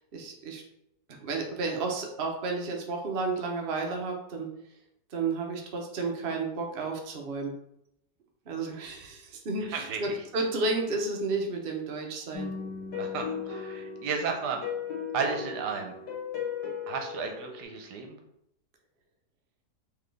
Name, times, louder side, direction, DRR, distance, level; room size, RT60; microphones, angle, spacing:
voice 1, 0.1-0.6 1.1-4.5 5.1-7.5 8.5-12.5, right 3 dB, 60° right, 1 dB, 0.6 m, -32 dB
voice 2, 9.7-10.2 12.9-14.6 15.1-15.9 16.9-18.2, right 5 dB, 75° right, 4 dB, 1.2 m, -33 dB
sound 1, 12.3-17.6, left 7 dB, 70° left, 1.6 m, -37 dB
4.1 x 3.2 x 3.3 m, 0.78 s
omnidirectional pair, 1.9 m